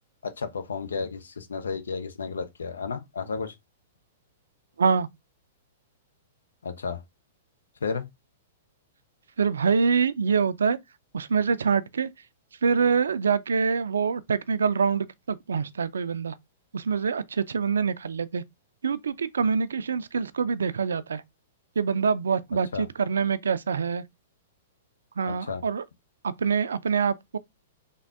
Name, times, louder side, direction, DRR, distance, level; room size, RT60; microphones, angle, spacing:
voice 1, 0.2-3.5 6.6-7.0 7.8-8.1 22.7-22.9 25.3-25.6, left 5 dB, 80° left, 0.6 m, -32 dB
voice 2, 9.4-10.8 11.1-12.1 12.6-16.3 16.7-18.4 18.8-21.2 21.8-24.0 25.2-25.8 26.2-27.4, right 5 dB, 80° right, 0.3 m, -25 dB
3.5 x 2.2 x 3.4 m
hypercardioid pair, 115°, 0 cm